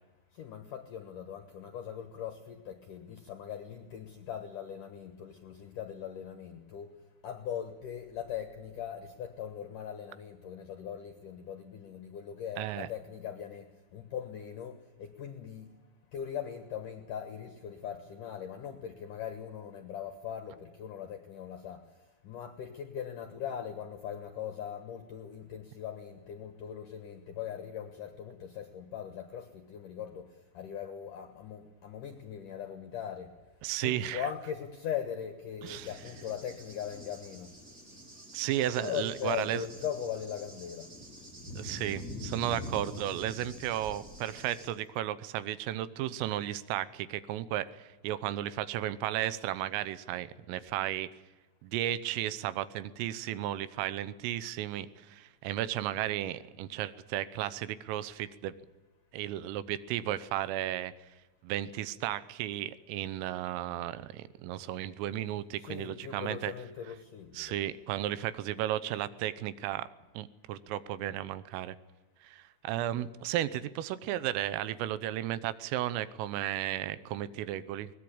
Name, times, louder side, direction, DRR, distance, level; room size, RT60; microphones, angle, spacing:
voice 1, 0.4-6.9 7.2-15.7 16.1-21.8 22.2-30.3 30.5-33.3 33.8-37.5 38.8-40.9 65.6-67.6, left 9 dB, 75° left, 8 dB, 1.9 m, -40 dB
voice 2, 12.6-12.9 33.6-34.3 35.6-35.9 38.3-39.7 41.6-51.1 51.6-58.5 59.1-60.9 61.4-66.5 67.3-69.9 70.2-71.8 72.2-77.9, right 13 dB, 90° right, 16 dB, 3.5 m, -34 dB
Cricket / Thunder, 35.7-44.7, left 1 dB, 20° right, 3.1 m, -45 dB
22.0 x 19.5 x 8.7 m, 1.2 s
omnidirectional pair, 5.7 m